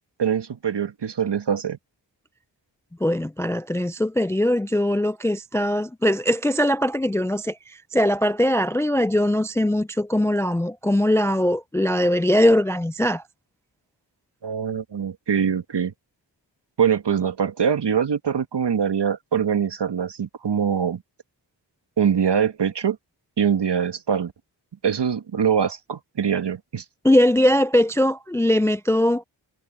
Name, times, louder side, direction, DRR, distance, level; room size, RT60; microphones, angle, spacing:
voice 1, 0.2-1.8 14.4-15.9 16.8-21.0 22.0-23.0 23.4-24.3 24.8-26.8, right 7 dB, 65° right, 1.8 m, -23 dB
voice 2, 3.0-13.2 27.0-29.2, left 1 dB, 5° left, 0.4 m, -21 dB
cardioid pair, 45°, 45 cm